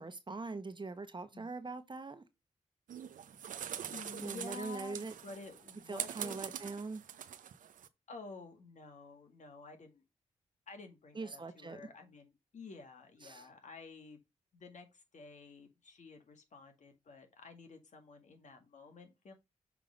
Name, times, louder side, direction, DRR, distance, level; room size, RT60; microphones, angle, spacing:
voice 1, 0.0-2.2 4.2-5.1 5.9-7.0 11.1-11.8 13.2-13.5, right 3 dB, 35° right, 1.1 m, -42 dB
sound 1, 2.9-7.9, right 9 dB, 75° right, 0.6 m, -44 dB
voice 2, 3.9-6.4 8.1-10.0 10.7-14.2 14.5-19.3, left 4 dB, 65° left, 1.9 m, -51 dB
6.9 x 3.7 x 5.2 m
cardioid pair, 50°, 14 cm